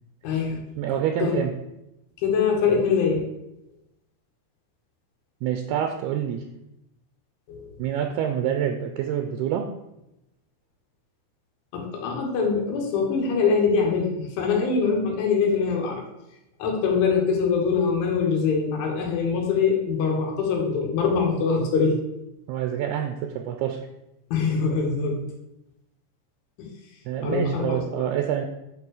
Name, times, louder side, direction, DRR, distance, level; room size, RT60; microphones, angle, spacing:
voice 1, 0.2-0.6 1.2-1.4 2.2-3.3 7.5-7.7 11.7-16.0 16.6-22.0 24.3-25.3 26.6-26.7 27.2-28.0, left 5 dB, 80° left, 0 dB, 4.5 m, -23 dB
voice 2, 0.8-1.5 5.4-6.4 7.8-9.7 22.5-23.8 27.1-28.5, right 9 dB, 80° right, 6 dB, 2.3 m, -27 dB
10.5 x 5.0 x 6.7 m, 0.88 s
omnidirectional pair, 5.5 m